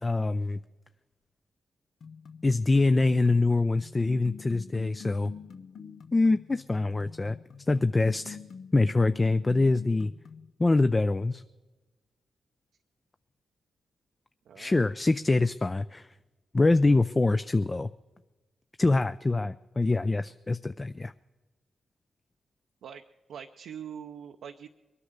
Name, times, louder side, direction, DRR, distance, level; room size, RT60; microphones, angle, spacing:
voice 1, 0.0-0.6 2.4-5.3 6.1-7.4 7.7-8.4 8.7-10.1 10.6-11.4 14.6-16.1 16.5-17.9 18.8-21.1, left 2 dB, 30° left, 11 dB, 0.5 m, -24 dB
sound 1, 2.0-10.5, left 6 dB, 70° left, 0.7 m, -46 dB
voice 2, 14.5-15.2 22.8-23.0 23.3-24.7, right 8 dB, 80° right, 4 dB, 0.5 m, -43 dB
22.0 x 9.8 x 6.6 m, 1.2 s
supercardioid pair, 45°, 0 cm